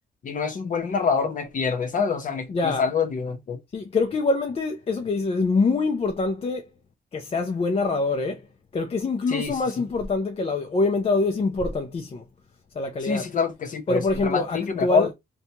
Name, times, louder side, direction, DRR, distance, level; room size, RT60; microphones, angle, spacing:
voice 1, 0.2-3.6 9.3-9.5 13.0-15.1, left 5 dB, 50° left, 0.9 m, -26 dB
voice 2, 2.5-2.9 3.7-6.7 7.1-8.5 8.7-12.2 12.7-13.3 13.9-15.1, left 3 dB, 35° left, 0.5 m, -25 dB
4.1 x 2.3 x 2.8 m
cardioid pair, 105°, 17 cm